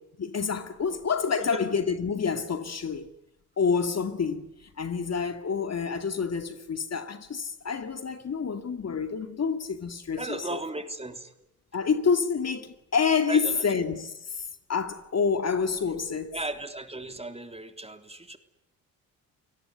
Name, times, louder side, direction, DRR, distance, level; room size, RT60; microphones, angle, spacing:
voice 1, 0.2-3.1 3.6-4.5 4.8-10.6 11.7-14.4 14.7-16.4, left 5 dB, 40° left, 2.3 m, -28 dB
voice 2, 10.2-11.3 13.3-13.6 16.3-18.4, right 2 dB, 15° right, 3.4 m, -36 dB
29.5 x 18.0 x 9.9 m
supercardioid pair, 60°, 38 cm